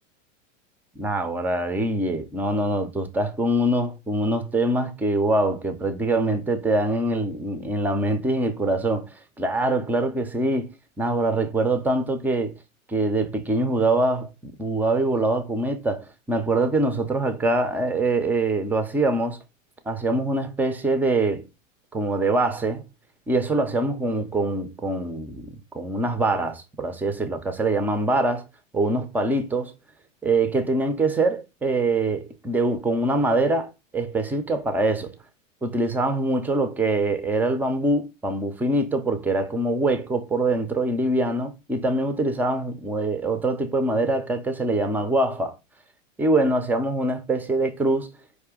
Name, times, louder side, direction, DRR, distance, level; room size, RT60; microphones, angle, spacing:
voice 1, 1.0-12.6 12.9-19.4 19.9-21.4 21.9-22.9 23.3-28.5 28.7-29.7 30.2-35.2 35.6-45.6 46.2-48.1, right 2 dB, 5° right, 0.3 m, -24 dB
4.9 x 2.5 x 3.5 m
hypercardioid pair, 100°, 39 cm